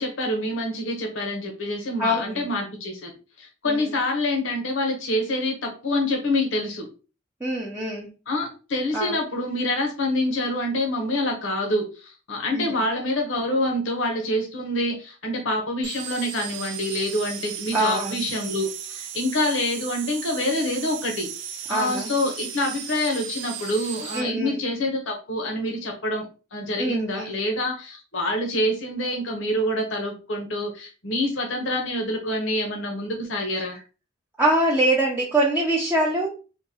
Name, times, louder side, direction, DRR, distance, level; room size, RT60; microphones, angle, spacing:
voice 1, 0.0-3.1 3.4-6.9 8.3-21.3 21.7-33.8, left 1 dB, 75° left, 1 dB, 0.8 m, -26 dB
voice 2, 2.0-2.5 3.6-3.9 7.4-8.1 8.9-9.2 12.5-12.7 17.7-18.2 21.7-22.1 24.1-24.5 26.8-27.3 34.4-36.3, right 1 dB, 10° right, -4 dB, 0.5 m, -24 dB
sound 1, 15.8-24.2, right 8 dB, 65° right, 0.5 m, -36 dB
3.6 x 2.2 x 2.7 m, 0.34 s
head